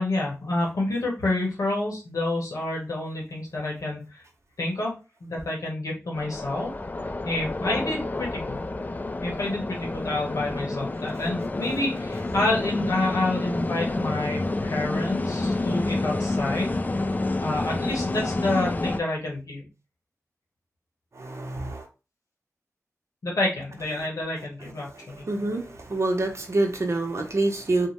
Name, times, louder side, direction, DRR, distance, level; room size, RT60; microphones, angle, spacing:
voice 1, 0.0-4.2 4.6-4.9 5.2-6.7 7.3-8.6 9.2-17.0 17.4-19.6 23.2-25.3, left 2 dB, 85° left, -2 dB, 1.0 m, -28 dB
sound 1, 6.1-19.0, left 2 dB, 30° left, 0.3 m, -29 dB
voice 2, 21.1-21.9 24.6-27.9, right 2 dB, 55° right, 3 dB, 0.8 m, -27 dB
2.7 x 2.1 x 3.1 m, 0.31 s
cardioid pair, 45°, 6 cm